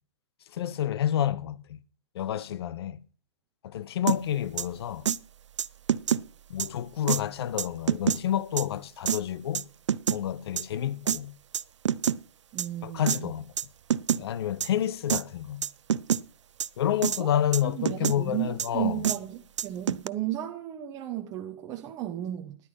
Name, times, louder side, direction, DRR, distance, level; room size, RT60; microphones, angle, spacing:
voice 1, 0.5-1.8 2.1-3.0 3.6-5.1 6.5-9.6 10.1-11.4 12.8-13.5 14.1-15.7 16.8-19.1, left 10 dB, 60° left, 0.9 m, -29 dB
sound 1, 4.1-4.2 4.6-4.7 5.0-5.2 5.6-6.2 6.6-6.7 7.1-7.2 7.6-8.2 8.6-8.7 9.1-9.2 9.5-10.2 10.6-10.7 11.1-11.2 11.5-12.2 12.6-12.7 13.1-13.2 13.6-13.7 13.9-14.2 14.6-14.7 15.1-15.2 15.6-16.2 16.6-16.7 17.0-17.2 17.5-18.2 18.6-18.7 19.0-19.2 19.6-20.1, right 9 dB, 90° right, 0.5 m, -26 dB
voice 2, 12.5-13.3 17.2-17.3 17.6-22.6, right 12 dB, 25° right, 1.0 m, -34 dB
11.0 x 9.8 x 5.3 m
hypercardioid pair, 150°, 15 cm